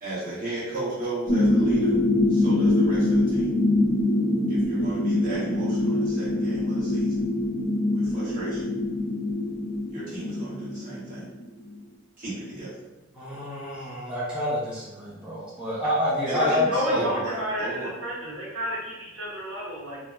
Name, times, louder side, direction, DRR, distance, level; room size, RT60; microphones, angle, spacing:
voice 1, 0.0-2.0 2.3-3.6 4.5-7.3 7.9-8.7 9.9-11.3 12.2-12.8 16.3-17.9, right 2 dB, 45° right, -10 dB, 1.2 m, -34 dB
sound 1, 1.3-11.7, left 1 dB, 35° left, 0.7 m, -24 dB
voice 2, 13.2-17.0, left 1 dB, 5° right, -10 dB, 0.5 m, -27 dB
voice 3, 16.4-20.0, equal, 85° right, -6 dB, 0.8 m, -31 dB
2.8 x 2.1 x 2.2 m, 1.1 s
head